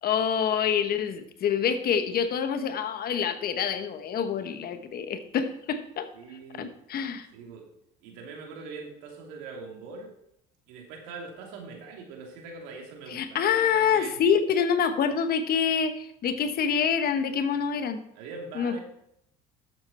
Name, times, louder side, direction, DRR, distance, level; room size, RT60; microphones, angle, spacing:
voice 1, 0.0-6.1 6.6-7.3 13.1-18.0 18.6-18.8, left 7 dB, 50° left, 10 dB, 1.1 m, -26 dB
voice 2, 6.1-6.7 7.3-7.7 8.0-10.1 10.7-14.2 18.1-18.8, right 4 dB, 85° right, 1 dB, 2.8 m, -42 dB
12.0 x 7.8 x 4.2 m, 0.77 s
supercardioid pair, 90°, 20 cm